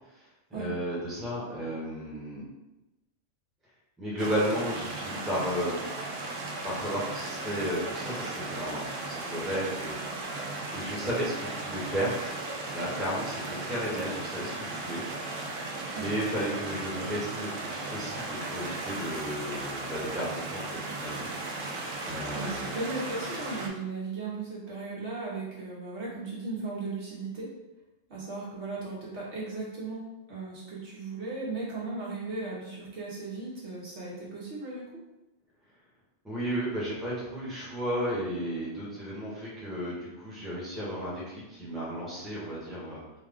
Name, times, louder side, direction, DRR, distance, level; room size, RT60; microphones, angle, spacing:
voice 1, 0.5-2.4 4.0-5.8 6.6-9.9 10.7-12.3 12.6-15.0 15.9-21.3 22.0-22.6 36.2-43.0, equal, ahead, -7 dB, 1.1 m, -33 dB
sound 1, 4.2-23.7, right 2 dB, 85° right, 1.0 m, -36 dB
voice 2, 22.3-27.5 28.1-34.9, right 3 dB, 65° right, -6 dB, 1.3 m, -36 dB
4.0 x 2.3 x 3.5 m, 1.0 s
omnidirectional pair, 1.3 m